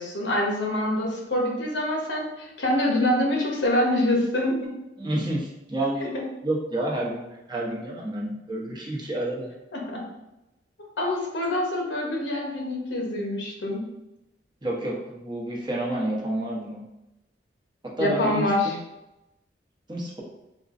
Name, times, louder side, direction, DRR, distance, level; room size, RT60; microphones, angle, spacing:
voice 1, 0.0-4.7 6.0-6.2 9.7-10.0 11.0-13.8 18.0-18.8, left 1 dB, 80° left, -1 dB, 0.9 m, -25 dB
voice 2, 5.0-9.5 14.6-16.8 18.0-18.8 19.9-20.2, right 1 dB, 25° right, -4 dB, 0.8 m, -29 dB
4.3 x 2.5 x 2.5 m, 0.94 s
head